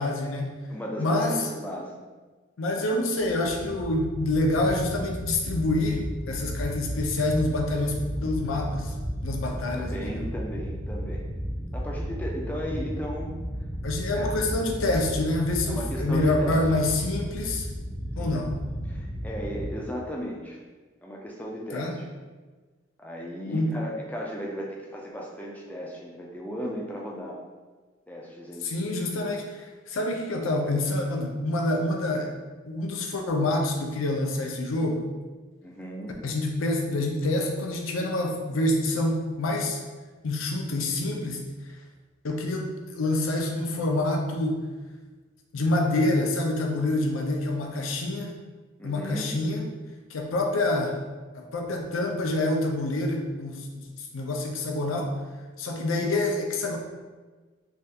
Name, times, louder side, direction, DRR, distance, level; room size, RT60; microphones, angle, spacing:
voice 1, 0.0-0.5 1.0-1.5 2.6-8.9 9.2-10.3 13.8-17.7 18.2-18.5 21.7-21.9 23.5-23.7 28.6-32.3 32.7-35.1 36.2-39.8 40.2-41.4 42.2-44.6 45.5-48.3 48.8-49.6 50.1-51.0 51.3-53.8 54.1-55.1 55.6-56.8, left 2 dB, 75° left, 2 dB, 0.5 m, -27 dB
voice 2, 0.7-2.0 2.8-3.1 9.7-11.3 11.7-13.3 14.1-14.3 15.7-16.7 18.2-18.4 18.9-20.6 21.0-22.2 23.0-27.4 28.1-28.7 35.6-36.2 48.8-49.3, equal, 10° left, -2 dB, 0.3 m, -36 dB
sound 1, 3.2-19.7, equal, 45° right, 0.7 m, -34 dB
3.3 x 2.3 x 2.7 m, 1.3 s
head